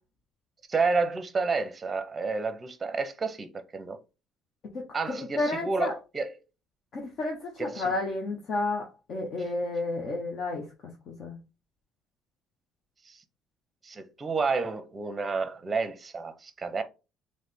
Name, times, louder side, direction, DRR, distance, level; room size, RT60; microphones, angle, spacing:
voice 1, 0.7-4.0 4.9-6.4 7.6-7.9 13.1-13.2 13.8-16.8, right 4 dB, 25° right, 0.7 m, -30 dB
voice 2, 5.4-5.9 6.9-8.8 9.1-10.6 11.1-11.4, left 2 dB, 50° left, 1.0 m, -31 dB
3.3 x 3.1 x 4.2 m
cardioid pair, 125°, 0 cm